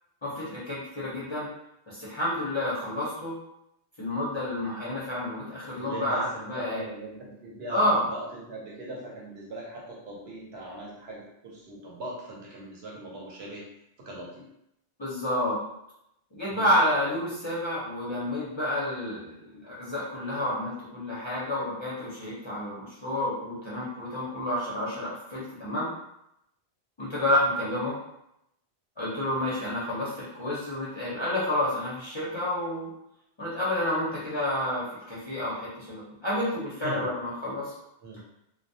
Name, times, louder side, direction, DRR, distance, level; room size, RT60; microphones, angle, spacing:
voice 1, 0.2-1.5 1.9-3.3 4.0-6.9 7.7-8.0 15.0-15.6 16.3-25.9 27.0-28.0 29.0-32.9 33.4-37.7, left 1 dB, 35° left, -8 dB, 0.5 m, -29 dB
voice 2, 5.8-13.7 14.0-14.5 16.5-16.7 36.8-37.1 38.0-38.2, right 1 dB, 75° right, -3 dB, 0.9 m, -40 dB
2.2 x 2.1 x 2.6 m, 0.81 s
omnidirectional pair, 1.1 m